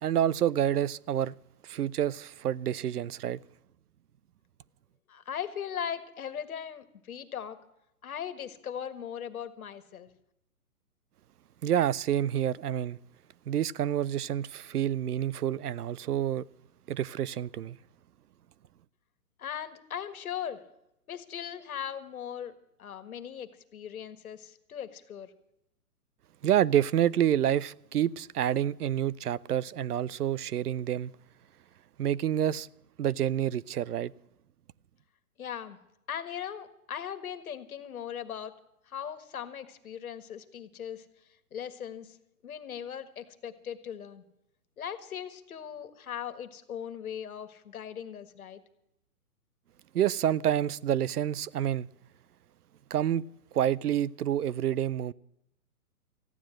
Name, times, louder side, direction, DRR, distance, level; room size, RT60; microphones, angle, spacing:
voice 1, 0.0-1.3 1.6-3.4 11.6-13.0 13.5-16.5 16.9-17.8 26.4-31.1 32.0-32.7 33.0-34.1 49.9-51.9 52.9-53.2 53.5-55.1, right 10 dB, 80° right, 0.6 m, -28 dB
voice 2, 5.1-7.6 8.0-10.1 19.4-20.6 21.1-25.3 35.4-35.8 36.1-38.5 38.9-41.0 41.5-42.2 42.4-44.2 44.8-48.6, left 9 dB, 65° left, 1.7 m, -39 dB
15.0 x 10.0 x 7.6 m
hypercardioid pair, 145°, 45 cm